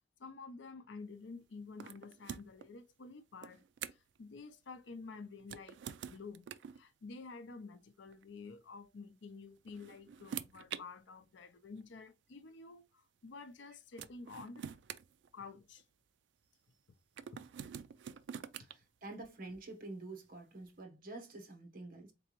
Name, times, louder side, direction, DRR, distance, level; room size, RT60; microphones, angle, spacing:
voice 1, 0.2-3.6 3.9-6.4 6.7-14.6 15.3-15.8 17.3-17.4, left 4 dB, 85° left, 0.6 m, -50 dB
sound 1, 1.8-2.7 3.4-4.2 5.4-6.8 8.1-8.2 9.4-10.8 11.8-11.9 13.5-13.6 14.0-15.8 17.2-18.7, right 8 dB, 70° right, 0.4 m, -46 dB
voice 2, 18.7-22.1, right 2 dB, 50° right, 1.1 m, -48 dB
4.1 x 3.4 x 3.0 m
head